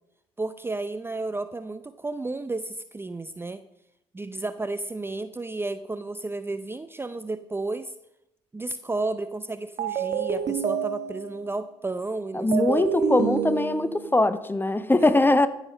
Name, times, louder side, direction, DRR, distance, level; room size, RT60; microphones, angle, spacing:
voice 1, 0.4-3.6 4.1-7.9 8.5-12.9, right 2 dB, 15° right, 12 dB, 0.6 m, -32 dB
sound 1, 9.8-11.5 12.5-14.2, right 7 dB, 55° right, 1.5 m, -28 dB
voice 2, 12.3-15.5, left 2 dB, 15° left, 12 dB, 1.0 m, -21 dB
14.0 x 7.2 x 5.4 m, 0.83 s
hypercardioid pair, 50°, 14 cm